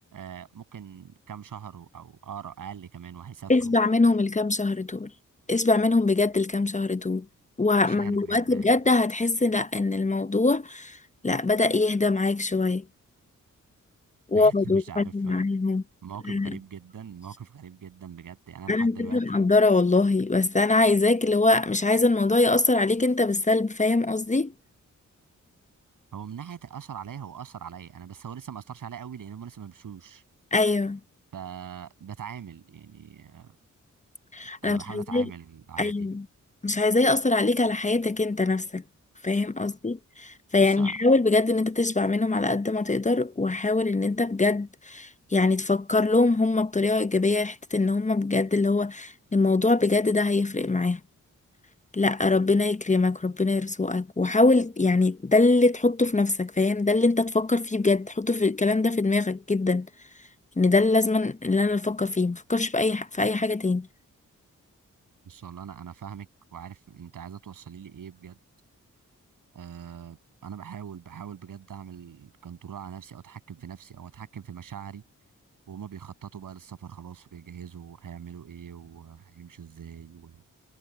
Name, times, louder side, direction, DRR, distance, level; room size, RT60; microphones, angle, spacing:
voice 1, 0.1-3.5 7.9-8.7 14.3-15.5 16.0-19.5 26.1-30.2 31.3-33.6 34.6-36.1 40.6-40.9 65.3-68.4 69.5-75.0 75.7-80.4, right 8 dB, 90° right, 7.3 m, -42 dB
voice 2, 3.5-5.1 5.5-7.3 7.6-11.0 11.2-12.8 14.3-15.8 16.3-16.6 18.7-24.5 30.5-31.0 34.3-35.3 35.8-36.2 36.6-38.8 39.2-51.0 51.9-59.9 60.6-63.9, left 3 dB, 25° left, 0.8 m, -23 dB
cardioid pair, 60°, 32 cm